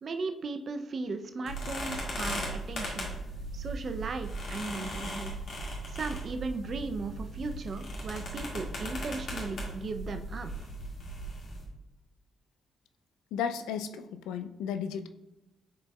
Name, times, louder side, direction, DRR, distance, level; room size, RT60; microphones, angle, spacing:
voice 1, 0.0-3.1 3.5-5.3 5.9-10.7, right 3 dB, 55° right, 7 dB, 0.5 m, -37 dB
sound 1, 1.5-11.6, right 1 dB, 65° left, 2.1 m, -37 dB
voice 2, 13.3-15.1, left 7 dB, 85° left, 9 dB, 0.4 m, -34 dB
10.5 x 4.1 x 2.4 m, 0.94 s
hypercardioid pair, 45°, 0 cm